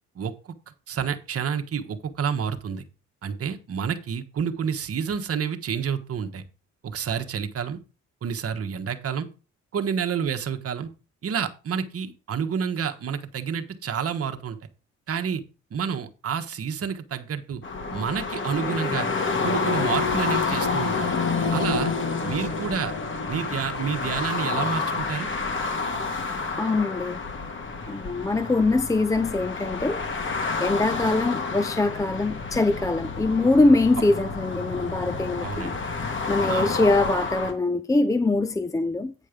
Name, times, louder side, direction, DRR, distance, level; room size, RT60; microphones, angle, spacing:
voice 1, 0.1-0.5 0.9-2.8 3.2-6.4 6.8-7.8 8.2-9.3 9.7-10.9 11.2-14.6 15.1-15.4 15.7-17.6 17.9-19.1 19.4-21.1 21.5-21.9 22.2-22.9 23.3-25.3 35.4-35.8 36.4-36.8, right 7 dB, 50° right, 1.3 m, -29 dB
sound 1, 17.6-37.5, left 4 dB, 40° left, 1.9 m, -29 dB
voice 2, 26.6-27.2 27.9-30.0 30.6-35.7 36.3-39.1, left 2 dB, 10° left, 0.4 m, -23 dB
9.2 x 5.4 x 5.1 m
cardioid pair, 90°, 30 cm